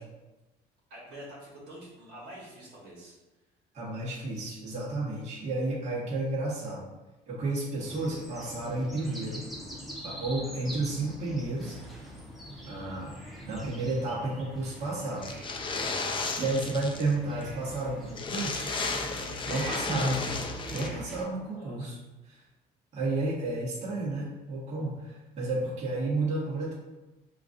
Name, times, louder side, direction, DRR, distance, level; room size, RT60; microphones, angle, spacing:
voice 1, 0.9-3.2 14.1-14.3 16.7-16.8 21.4-22.0, right 1 dB, 70° right, -5 dB, 1.3 m, -47 dB
voice 2, 3.7-6.8 7.3-9.4 10.0-11.8 12.7-13.1 13.4-15.4 16.4-18.7 19.5-20.4 20.7-22.0 22.3-22.4 22.9-26.7, right 2 dB, 45° right, -7 dB, 1.3 m, -32 dB
sound 1, 7.8-21.2, right 1 dB, ahead, 0.8 m, -43 dB
sound 2, 15.2-17.1 17.4-17.5 17.8-17.9 18.1-20.9, left 4 dB, 30° left, 0.4 m, -34 dB
5.0 x 2.5 x 2.6 m, 1.1 s
cardioid pair, 110°, 17 cm